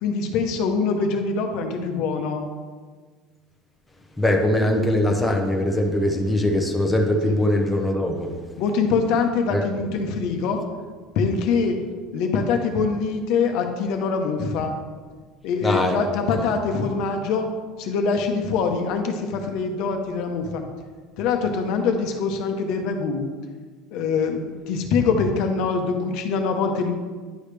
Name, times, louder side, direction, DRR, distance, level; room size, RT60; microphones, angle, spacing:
voice 1, 0.0-2.5 7.2-7.3 8.6-10.6 11.2-11.8 12.1-14.8 15.4-17.5 17.8-20.6 21.2-23.3 23.9-26.9, left 5 dB, 60° left, 4 dB, 0.9 m, -24 dB
voice 2, 4.2-8.3 9.5-9.6 15.6-16.0, left 1 dB, 5° left, 1 dB, 0.7 m, -21 dB
10.0 x 5.0 x 3.3 m, 1.5 s
cardioid pair, 150°, 0 cm